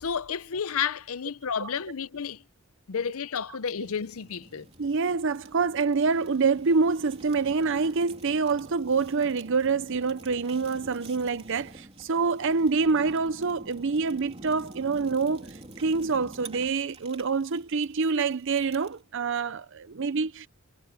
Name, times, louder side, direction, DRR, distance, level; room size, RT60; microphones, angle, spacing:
voice 1, 0.0-2.4 2.9-4.7, left 7 dB, 70° left, 0.6 m, -31 dB
Fire, 3.9-19.0, right 2 dB, 25° right, 3.3 m, -48 dB
voice 2, 4.8-20.5, right 4 dB, 55° right, 0.6 m, -26 dB
head